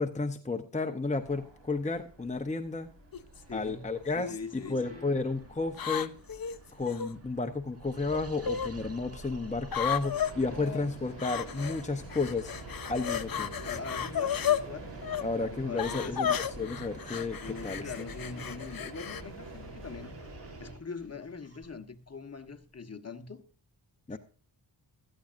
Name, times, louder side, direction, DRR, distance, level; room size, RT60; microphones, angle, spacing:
voice 1, 0.0-2.9 3.5-6.1 6.7-12.5 12.9-13.5 15.2-17.4 17.6-17.9 24.1-24.2, left 3 dB, 15° left, 0.8 m, -32 dB
sound 1, 1.1-20.7, right 2 dB, 75° right, 3.8 m, -47 dB
sound 2, 3.1-3.4 4.2-4.7 5.7-7.1 8.1-8.7 9.7-10.3 11.2-11.8 12.1-14.6 15.0-15.2 15.8-19.2, left 9 dB, 55° left, 0.8 m, -33 dB
sound 3, 3.2-22.8, right 1 dB, 35° right, 2.0 m, -53 dB
voice 2, 3.5-3.9 4.1-5.1 10.5-11.0 13.6-14.9 15.3-16.4 17.4-20.2 20.6-23.4 24.1-24.2, left 5 dB, 35° left, 1.3 m, -42 dB
16.5 x 13.0 x 2.6 m
wide cardioid pair, 80°, 43 cm